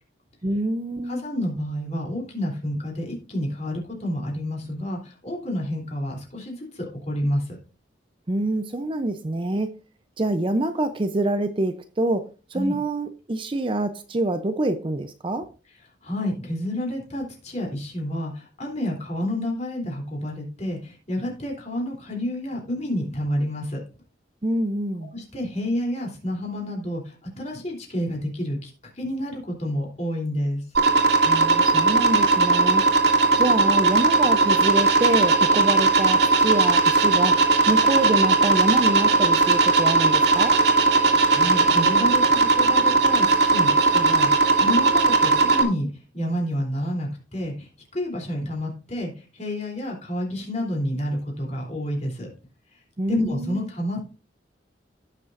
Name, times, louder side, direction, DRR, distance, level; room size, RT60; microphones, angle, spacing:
voice 1, 0.4-1.2 8.3-9.7 10.2-15.5 24.4-25.1 31.2-32.8 33.4-37.4 37.7-40.6 53.0-53.6, right 1 dB, 25° right, 0.5 m, -26 dB
voice 2, 1.0-7.6 12.5-12.8 16.0-23.8 25.0-30.6 41.3-45.9 46.1-52.3 53.1-54.0, equal, 35° left, 3.2 m, -29 dB
sound 1, 30.7-45.6, right 4 dB, 60° right, 2.4 m, -18 dB
16.5 x 6.7 x 2.5 m
head